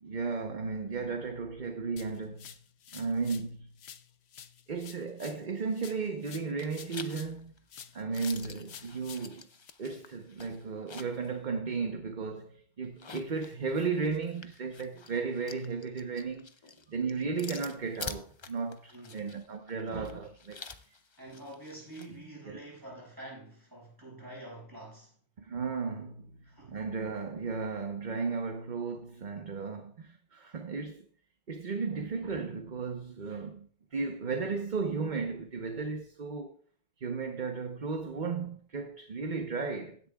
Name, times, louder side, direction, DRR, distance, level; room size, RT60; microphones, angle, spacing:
voice 1, 0.0-2.5 2.9-3.7 4.7-7.5 7.9-9.5 9.8-16.5 16.9-20.6 22.5-22.6 25.4-31.1 31.5-36.5 37.0-40.0, right 4 dB, 45° right, 1.0 m, -35 dB
sound 1, 2.0-3.5 3.8-7.4 7.7-9.7, left 9 dB, 65° left, 0.9 m, -50 dB
sound 2, 5.9-6.3 6.6-11.3 11.7-11.8 12.8-22.1, left 4 dB, 35° left, 0.5 m, -47 dB
voice 2, 18.9-19.3 21.2-25.1 26.4-26.8, right 1 dB, 15° right, 6.1 m, -47 dB
15.5 x 10.0 x 2.3 m
omnidirectional pair, 1.2 m